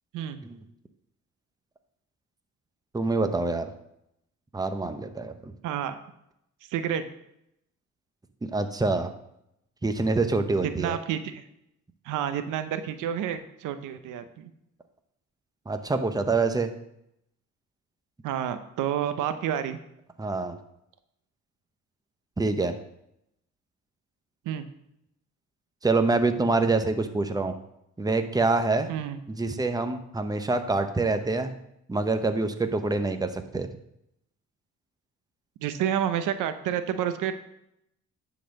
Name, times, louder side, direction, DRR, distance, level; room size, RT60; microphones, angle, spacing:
voice 1, 2.9-3.7 4.5-5.5 8.5-9.1 9.8-11.0 15.7-16.7 20.2-20.6 22.4-22.7 25.8-27.5 28.0-28.9 29.3-31.5 31.9-33.7, right 3 dB, 10° right, 8 dB, 0.9 m, -26 dB
voice 2, 5.6-6.0 6.7-7.0 10.8-11.4 12.0-14.5 18.2-19.8 24.5-24.7 28.9-29.2 35.6-37.4, right 9 dB, 90° right, 10 dB, 0.8 m, -29 dB
10.0 x 4.1 x 6.4 m, 0.79 s
cardioid pair, 90°, 30 cm